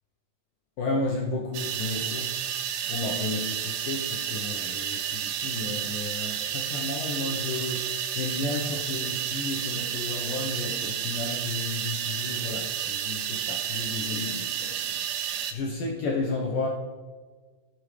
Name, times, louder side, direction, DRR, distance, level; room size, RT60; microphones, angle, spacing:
voice 1, 0.8-2.4 2.8-16.7, left 3 dB, 75° left, -2 dB, 2.0 m, -33 dB
sound 1, 1.5-15.5, right 9 dB, 85° right, 3.3 m, -31 dB
18.0 x 7.6 x 3.3 m, 1.5 s
omnidirectional pair, 5.4 m